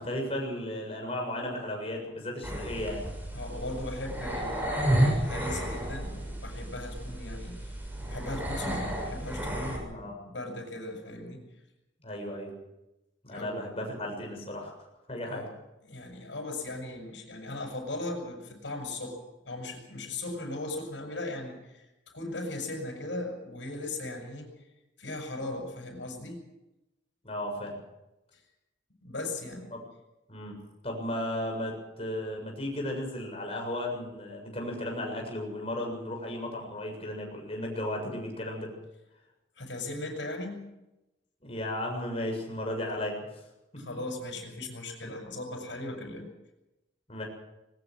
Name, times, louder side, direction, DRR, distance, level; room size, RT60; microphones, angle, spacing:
voice 1, 0.0-3.0 9.9-10.2 12.0-12.5 13.2-14.7 15.1-15.4 27.2-27.8 29.7-29.8 30.3-30.6 30.8-38.7 41.4-43.1 47.1-47.2, left 1 dB, 30° left, 1 dB, 7.2 m, -35 dB
sound 1, 2.4-9.8, right 1 dB, 10° right, 6.4 m, -31 dB
voice 2, 3.3-7.8 8.1-11.4 13.3-13.6 15.2-15.5 15.8-19.2 19.5-24.7 25.0-26.4 28.3-28.4 29.0-29.7 39.6-40.6 43.8-46.3, left 2 dB, 75° left, 1 dB, 7.2 m, -38 dB
21.5 x 20.0 x 6.4 m, 0.96 s
head